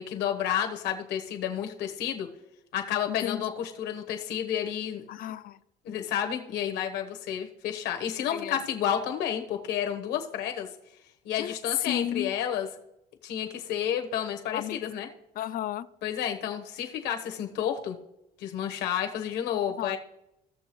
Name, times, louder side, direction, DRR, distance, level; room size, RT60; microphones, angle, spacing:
voice 1, 0.0-2.3 2.7-5.0 5.8-10.7 11.2-12.7 13.2-15.1 16.0-18.0 18.4-20.0, left 9 dB, 85° left, 4 dB, 1.2 m, -31 dB
voice 2, 3.1-3.5 5.1-5.6 8.3-8.6 11.4-11.6 11.8-12.3 14.5-14.9 15.4-15.9 19.8-20.0, left 11 dB, 60° left, 15 dB, 0.4 m, -33 dB
16.0 x 6.8 x 3.1 m, 0.86 s
cardioid pair, 110°, 17 cm